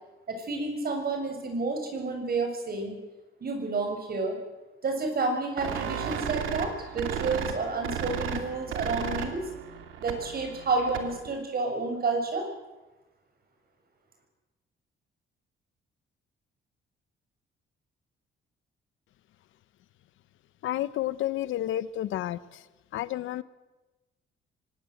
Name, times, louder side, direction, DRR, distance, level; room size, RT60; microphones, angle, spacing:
voice 1, 0.3-3.0 3.4-4.4 4.8-9.4 10.0-12.5, right 3 dB, 50° right, 4 dB, 7.2 m, -30 dB
sound 1, 5.6-11.3, right 8 dB, 85° right, 2.7 m, -34 dB
voice 2, 20.6-22.6 22.9-23.4, left 13 dB, 80° left, 16 dB, 0.9 m, -30 dB
24.5 x 19.5 x 8.0 m, 1.1 s
cardioid pair, 90°, 20 cm